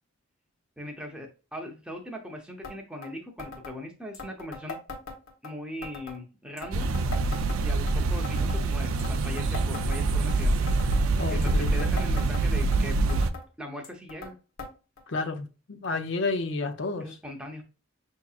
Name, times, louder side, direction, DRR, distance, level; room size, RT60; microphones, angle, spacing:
voice 1, 0.8-4.8 5.4-6.9 7.6-10.7 11.3-13.3 13.6-14.4 17.0-17.6, left 1 dB, 5° right, 0.7 m, -40 dB
sound 1, 2.6-2.8 3.0-3.1 3.4-3.7 4.1-5.5 5.8-6.2 6.6-7.9 8.2-8.6 9.0-10.4 10.7-11.0 11.4-12.8 13.1-13.5 13.8-14.3 14.6-14.7 15.0-15.1 15.8-15.9 16.7-16.8, left 3 dB, 80° left, 1.2 m, -40 dB
sound 2, 6.7-13.3, right 3 dB, 80° right, 0.4 m, -25 dB
voice 2, 11.2-11.9 15.1-17.2, left 3 dB, 55° left, 0.5 m, -31 dB
5.8 x 2.8 x 2.3 m
head